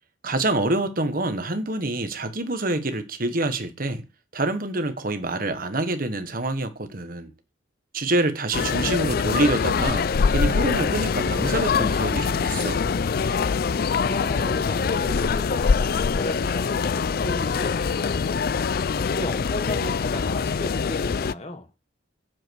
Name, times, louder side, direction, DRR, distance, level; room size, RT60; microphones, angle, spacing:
voice 1, 0.2-4.0 4.3-7.3 7.9-10.1 10.3-12.9, right 2 dB, 45° right, 1.4 m, -26 dB
sound 1, 8.5-21.3, left 5 dB, 50° left, 0.4 m, -24 dB
voice 2, 14.0-18.3 18.9-21.7, left 1 dB, 35° left, 1.5 m, -34 dB
8.2 x 7.5 x 4.7 m
head